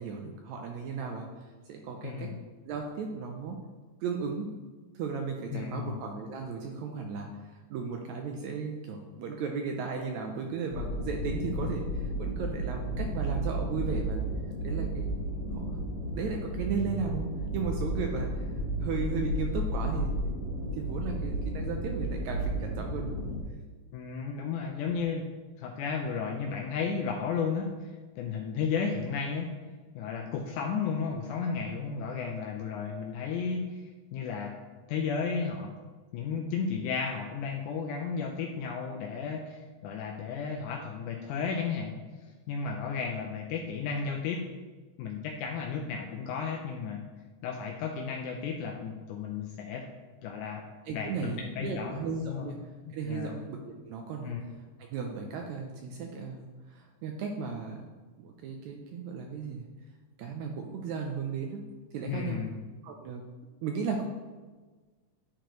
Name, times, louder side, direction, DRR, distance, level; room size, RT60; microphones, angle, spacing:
voice 1, 0.0-2.4 2.7-3.6 4.0-4.5 5.0-14.3 14.6-15.1 15.5-15.8 16.1-18.5 18.8-20.1 20.8-23.3 50.9-52.6 52.9-54.5 54.8-57.9 58.2-59.7 60.2-61.6 61.9-62.4 62.8-63.2 63.6-64.0, right 5 dB, 85° right, 2 dB, 1.7 m, -35 dB
voice 2, 2.0-2.4 5.5-6.0 11.4-11.7 23.9-25.3 25.6-27.7 28.2-29.5 30.0-33.8 34.1-34.6 34.9-35.7 36.1-42.0 42.5-44.4 45.0-47.0 47.4-49.9 50.2-50.6 50.9-52.5 53.0-53.4 54.3-54.4 62.1-62.6, left 5 dB, 80° left, 1 dB, 1.9 m, -33 dB
sound 1, 10.7-23.4, right 1 dB, 55° left, 2.4 m, -33 dB
10.0 x 4.5 x 3.0 m, 1.3 s
omnidirectional pair, 3.8 m